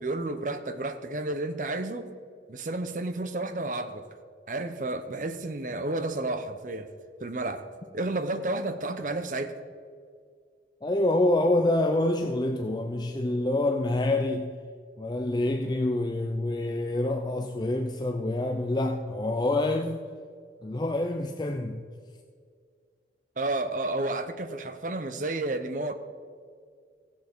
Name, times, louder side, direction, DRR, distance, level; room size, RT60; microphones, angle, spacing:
voice 1, 0.0-2.1 2.5-4.1 4.5-6.9 7.2-7.7 7.9-9.6 23.4-25.9, right 2 dB, 45° right, 9 dB, 0.7 m, -31 dB
voice 2, 10.8-14.5 15.0-20.1 20.6-21.9, left 2 dB, 25° left, 4 dB, 0.4 m, -27 dB
16.0 x 7.4 x 4.6 m, 2.1 s
head